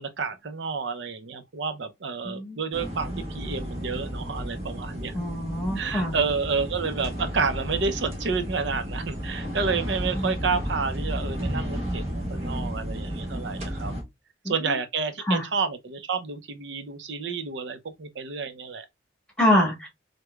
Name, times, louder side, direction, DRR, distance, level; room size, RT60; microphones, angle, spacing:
voice 1, 0.0-5.1 5.7-13.9 14.5-18.8, right 5 dB, 80° right, 0.6 m, -30 dB
voice 2, 2.2-2.6 5.1-6.2 10.1-10.3 14.4-14.5 15.3-15.5 19.4-19.9, left 1 dB, 5° left, 1.6 m, -24 dB
sound 1, 2.7-14.0, equal, 35° right, 0.9 m, -32 dB
4.6 x 2.2 x 2.3 m
head